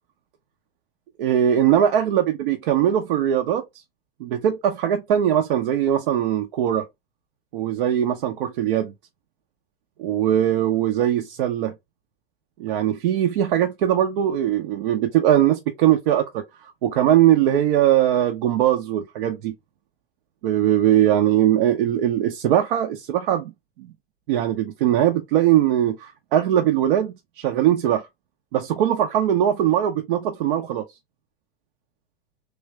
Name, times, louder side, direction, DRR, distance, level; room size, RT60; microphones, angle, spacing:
voice 1, 1.2-3.6 4.2-6.9 7.5-8.9 10.0-11.7 12.6-19.5 20.4-23.5 23.8-23.9 24.3-28.1 28.5-30.8, right 11 dB, 60° right, 0.7 m, -20 dB
3.3 x 2.6 x 3.3 m
hypercardioid pair, 100°, 31 cm